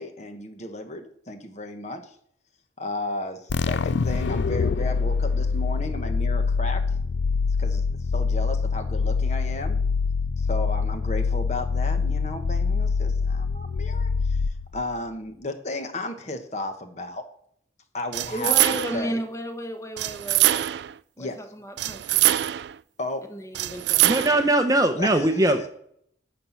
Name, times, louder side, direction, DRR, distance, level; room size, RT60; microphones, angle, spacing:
voice 1, 0.0-2.1 2.8-6.8 7.6-7.8 8.1-9.8 10.4-14.4 14.7-17.3 17.9-19.2 21.2-21.5 23.0-23.3 25.0-25.5, left 2 dB, 40° left, 7 dB, 1.2 m, -34 dB
sound 1, 3.5-15.0, left 5 dB, 75° left, 0.4 m, -25 dB
sound 2, 18.1-19.1 20.0-20.9 21.8-22.8 23.5-24.5, right 14 dB, 65° right, 0.3 m, -23 dB
voice 2, 18.3-20.7 21.2-22.4 23.3-24.0, equal, 15° left, 6 dB, 1.1 m, -33 dB
voice 3, 24.0-25.7, right 1 dB, 20° right, 8 dB, 0.7 m, -21 dB
11.5 x 4.4 x 8.2 m, 0.67 s
head